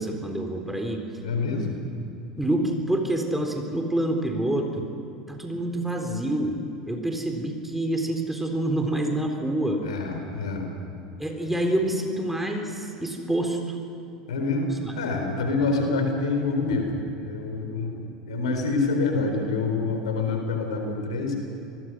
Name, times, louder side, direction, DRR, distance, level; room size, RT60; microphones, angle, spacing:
voice 1, 0.0-1.1 1.5-1.6 2.4-4.9 5.3-6.6 6.9-9.8 11.2-13.8 14.8-15.0, right 1 dB, 5° right, 3 dB, 3.8 m, -27 dB
voice 2, 1.2-1.8 9.8-10.7 14.3-14.7 15.0-21.4, left 3 dB, 75° left, 4 dB, 4.1 m, -26 dB
27.5 x 20.5 x 6.3 m, 2.8 s
figure-of-eight pair, 75°, 3 cm